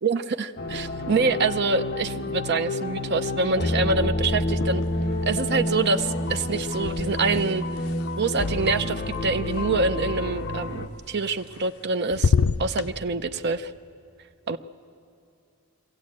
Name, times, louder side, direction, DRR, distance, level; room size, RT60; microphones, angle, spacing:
voice 1, 0.0-4.8 5.3-7.6 8.2-12.3 12.6-13.7 14.5-14.6, right 4 dB, 55° right, 10 dB, 0.6 m, -25 dB
sound 1, 0.6-10.9, left 1 dB, 50° left, 1.1 m, -29 dB
sound 2, 4.5-5.2 5.5-9.6 11.2-11.8 12.1-12.9, left 5 dB, 85° left, 0.5 m, -29 dB
22.5 x 15.0 x 8.5 m, 2.7 s
head